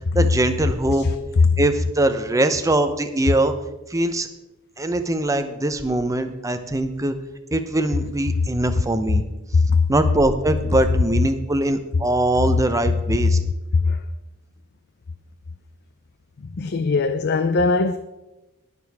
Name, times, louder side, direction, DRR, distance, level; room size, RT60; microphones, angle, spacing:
voice 1, 0.1-1.1 1.6-3.5 3.9-4.3 4.8-7.2 7.5-9.2 9.9-13.4, right 1 dB, 15° right, 8 dB, 0.7 m, -22 dB
voice 2, 16.6-18.0, left 3 dB, 50° left, 10 dB, 0.5 m, -20 dB
20.0 x 6.8 x 3.5 m, 1.0 s
head